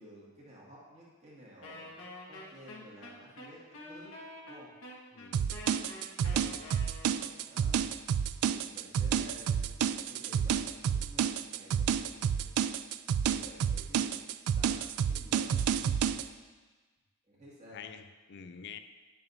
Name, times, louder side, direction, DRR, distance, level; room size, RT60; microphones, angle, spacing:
voice 1, 0.0-2.0 2.3-4.1 4.4-4.7 6.2-6.6 7.4-7.8 8.4-12.5 13.0-14.2 14.6-16.0 17.3-17.8, equal, 30° right, -6 dB, 2.1 m, -53 dB
Wind instrument woodwind instrument, 1.6-7.4, left 1 dB, 75° left, 1.4 m, -47 dB
voice 2, 5.1-5.6 17.7-18.8, left 7 dB, 55° left, 10 dB, 0.4 m, -47 dB
sound 1, 5.3-16.2, right 8 dB, 90° right, 0.3 m, -30 dB
10.5 x 6.8 x 2.7 m, 1.4 s
head